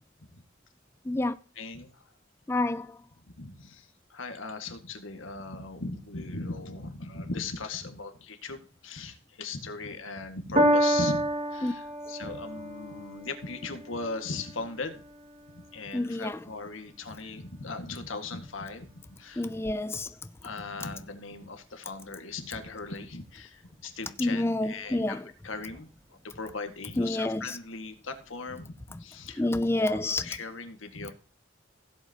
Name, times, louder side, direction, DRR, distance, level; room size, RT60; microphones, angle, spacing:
voice 1, 1.6-2.0 3.3-15.0 15.5-19.5 20.4-31.1, left 3 dB, 85° left, 1.9 m, -39 dB
voice 2, 2.5-3.0 11.6-11.7 15.9-16.4 19.4-20.1 24.2-25.2 27.0-27.6 29.4-30.3, left 2 dB, 10° left, 0.4 m, -28 dB
Piano, 10.5-17.1 17.9-18.0, equal, 30° right, 2.2 m, -30 dB
16.5 x 7.8 x 2.9 m
head